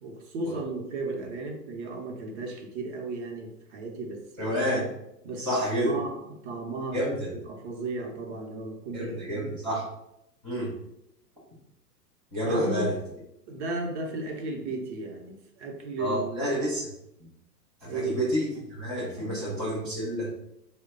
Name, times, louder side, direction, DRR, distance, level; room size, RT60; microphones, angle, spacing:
voice 1, 0.0-4.6 5.2-5.5 5.8-6.2 6.4-7.2 7.5-9.6 12.4-12.9 13.5-16.6 17.8-18.2 19.1-19.4, right 3 dB, 45° right, 2 dB, 0.8 m, -35 dB
voice 2, 4.4-4.9 5.4-5.9 6.9-7.3 8.9-9.8 10.4-10.7 12.3-12.9 16.0-16.9 17.8-20.3, equal, 5° right, -12 dB, 0.3 m, -29 dB
3.3 x 2.2 x 3.7 m, 0.82 s
hypercardioid pair, 110°, 49 cm